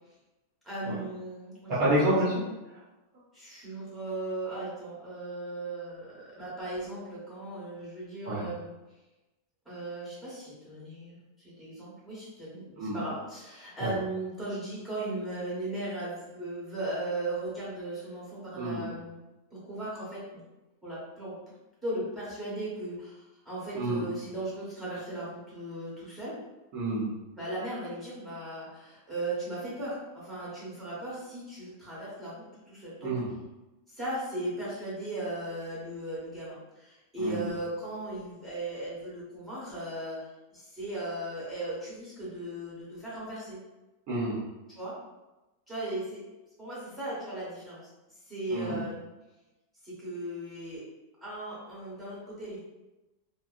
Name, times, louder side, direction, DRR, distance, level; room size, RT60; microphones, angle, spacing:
voice 1, 0.6-2.0 2.3-2.5 3.3-8.7 9.6-19.2 19.5-20.4 20.8-21.3 21.8-26.3 27.3-33.1 33.9-40.3 40.5-43.6 44.7-44.9 45.7-46.2 46.6-47.9 48.3-49.1 49.8-50.8 51.2-52.6, right 1 dB, ahead, -9 dB, 1.0 m, -37 dB
voice 2, 1.8-2.3 8.2-8.4 12.8-13.0 13.8-13.9 18.6-18.9 23.7-24.0 26.7-27.1 33.0-33.3 37.2-37.4 44.1-44.4 48.5-48.8, right 1 dB, 70° right, -8 dB, 1.1 m, -28 dB
2.8 x 2.6 x 2.4 m, 1.1 s
omnidirectional pair, 1.7 m